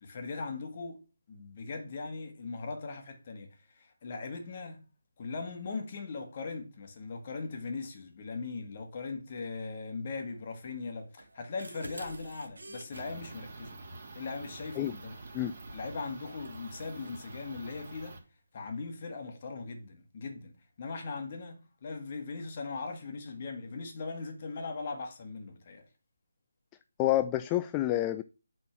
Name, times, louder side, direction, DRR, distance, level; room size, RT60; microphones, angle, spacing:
voice 1, 0.0-1.0 1.3-3.5 3.7-4.8 5.2-13.8 14.2-15.2 15.7-18.2 18.5-25.8, left 4 dB, 35° left, 2.0 m, -39 dB
sound 1, 11.2-13.0 15.7-15.9 16.4-17.2, right 2 dB, 75° right, 2.2 m, -48 dB
sound 2, 12.9-18.2, right 3 dB, 35° right, 2.8 m, -47 dB
voice 2, 27.0-28.2, left 14 dB, 15° left, 0.3 m, -28 dB
8.6 x 4.3 x 6.0 m
figure-of-eight pair, 160°, 0 cm